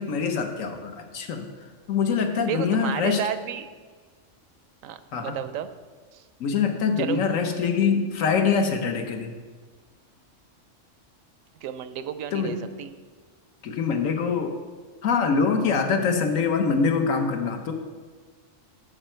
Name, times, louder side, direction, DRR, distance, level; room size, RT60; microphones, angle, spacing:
voice 1, 0.0-1.5 1.9-3.2 5.1-5.4 6.4-9.3 12.3-12.5 13.6-14.6 15.0-17.7, left 5 dB, 85° left, 5 dB, 1.3 m, -24 dB
voice 2, 2.4-3.7 4.8-5.7 6.1-6.2 7.0-7.2 11.6-12.9, right 9 dB, 90° right, 12 dB, 1.0 m, -32 dB
13.0 x 5.5 x 4.4 m, 1.5 s
omnidirectional pair, 1.3 m